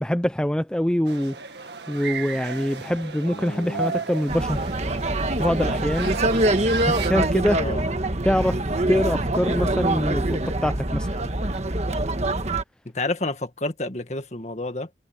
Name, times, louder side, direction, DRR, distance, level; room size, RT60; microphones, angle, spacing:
voice 1, 0.0-1.3 1.9-4.6 5.4-6.1 6.9-7.7 8.2-8.6 8.9-11.1, equal, 5° left, 0.4 m, -24 dB
sound 1, 1.0-7.1, right 4 dB, 75° right, 1.9 m, -34 dB
voice 2, 3.3-4.1 7.6-7.8 12.9-14.9, left 2 dB, 40° left, 1.9 m, -30 dB
sound 2, 4.3-12.6, right 1 dB, 40° right, 1.5 m, -24 dB
head